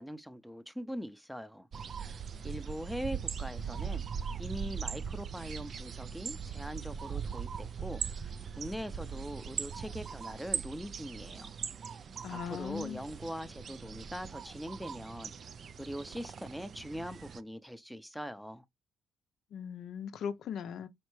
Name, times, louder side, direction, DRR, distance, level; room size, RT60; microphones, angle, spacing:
voice 1, 0.0-1.7 2.4-4.0 4.4-8.3 8.6-11.5 12.5-15.3 15.8-18.6, equal, ahead, 0.6 m, -42 dB
sound 1, 1.7-17.4, right 7 dB, 50° right, 0.3 m, -40 dB
voice 2, 12.2-13.0 19.5-20.9, left 8 dB, 70° left, 0.5 m, -39 dB
4.4 x 3.1 x 3.1 m
cardioid pair, 90°, 0 cm